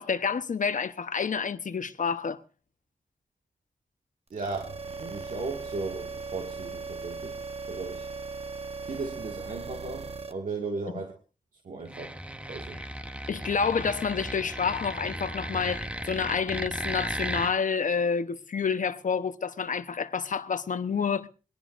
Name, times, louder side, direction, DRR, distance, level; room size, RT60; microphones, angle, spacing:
voice 1, 0.0-2.4 10.9-11.0 13.3-21.3, left 6 dB, 75° left, 1.0 m, -29 dB
sound 1, 4.3-10.3, right 4 dB, 50° right, 1.2 m, -38 dB
voice 2, 4.3-7.4 7.7-8.1 8.8-11.1 11.6-12.2 12.5-12.8, right 3 dB, 80° right, 2.1 m, -36 dB
sound 2, 11.8-17.5, right 1 dB, 10° right, 1.1 m, -35 dB
22.5 x 18.0 x 2.6 m
wide cardioid pair, 65°, 13 cm